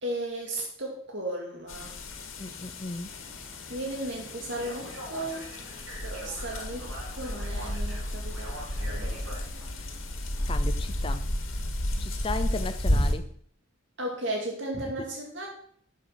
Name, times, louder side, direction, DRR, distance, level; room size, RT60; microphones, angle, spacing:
voice 1, 0.0-2.0 3.7-5.5 6.0-9.3 14.0-15.5, right 1 dB, 60° right, 0 dB, 2.3 m, -35 dB
sound 1, 1.7-13.2, left 1 dB, 80° left, 2.0 m, -32 dB
voice 2, 2.4-3.1 9.8-9.9 10.5-11.3 12.0-13.3, left 3 dB, 25° left, 9 dB, 0.6 m, -35 dB
Subway metro underground, 3.1-11.0, left 1 dB, ahead, 4.9 m, -54 dB
Speech, 4.5-9.8, right 1 dB, 85° right, 4.1 m, -44 dB
11.5 x 7.3 x 5.8 m, 0.62 s
head